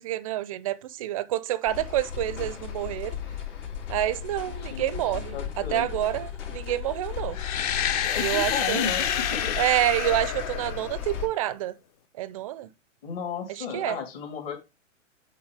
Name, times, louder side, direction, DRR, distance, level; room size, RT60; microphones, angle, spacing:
voice 1, 0.0-3.2 3.9-7.4 8.2-8.9 9.6-11.7 12.2-12.7 13.6-14.0, right 13 dB, 30° right, 0.4 m, -28 dB
sound 1, 1.7-11.3, left 9 dB, 70° left, 3.2 m, -36 dB
voice 2, 4.6-5.9 8.0-9.6 13.0-14.6, left 7 dB, 50° left, 2.7 m, -34 dB
sound 2, 7.3-11.3, left 9 dB, 30° left, 0.5 m, -29 dB
8.3 x 3.5 x 4.8 m
hypercardioid pair, 140°, 37 cm